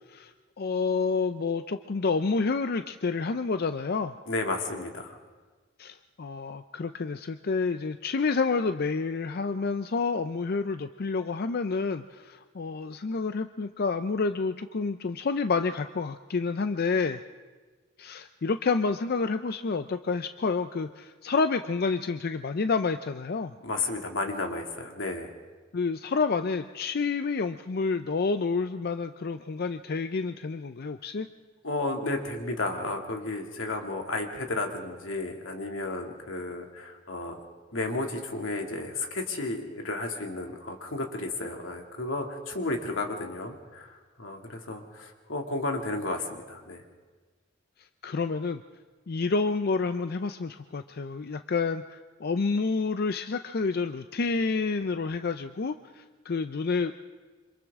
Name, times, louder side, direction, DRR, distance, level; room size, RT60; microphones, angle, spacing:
voice 1, 0.1-4.1 5.8-17.2 18.0-23.5 25.7-31.3 48.0-48.6 49.1-56.9, left 4 dB, 50° left, 9 dB, 0.5 m, -29 dB
voice 2, 4.3-5.2 23.6-25.3 31.6-37.4 37.7-43.9 44.2-46.8, left 2 dB, 90° left, 2 dB, 2.4 m, -33 dB
27.0 x 26.0 x 3.6 m, 1.4 s
head